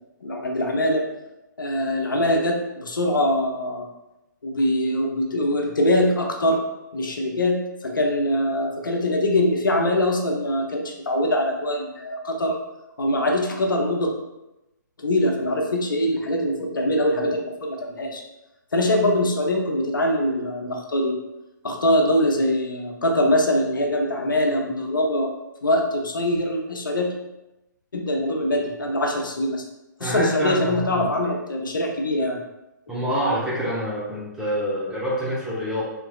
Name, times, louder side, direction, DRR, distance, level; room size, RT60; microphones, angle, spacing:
voice 1, 0.2-1.0 1.6-3.9 4.4-6.6 6.9-12.6 13.0-14.1 15.0-18.2 18.7-21.1 21.6-25.3 25.6-27.1 27.9-29.6 30.0-32.4, left 1 dB, 80° left, 1 dB, 0.6 m, -23 dB
voice 2, 30.0-31.1 32.9-35.8, equal, 5° right, -7 dB, 0.8 m, -26 dB
3.5 x 2.9 x 2.3 m, 0.95 s
figure-of-eight pair, 135°, 11 cm